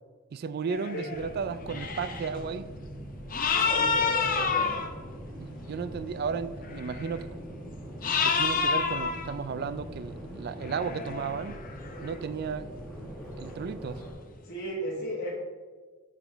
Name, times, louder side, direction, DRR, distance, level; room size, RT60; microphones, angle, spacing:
voice 1, 0.3-2.7 5.4-7.6 8.2-11.6 12.0-12.8 13.4-14.0, right 5 dB, 50° right, 0.3 m, -34 dB
sound 1, 0.7-1.3 1.6-2.4 3.3-4.9 6.6-7.2 8.0-9.4 10.5-12.2, left 5 dB, 40° left, 0.7 m, -29 dB
sound 2, 1.1-14.1, equal, 5° right, 1.5 m, -42 dB
voice 2, 3.6-4.8 14.4-15.4, equal, 60° left, 1.3 m, -34 dB
9.2 x 4.9 x 3.4 m
head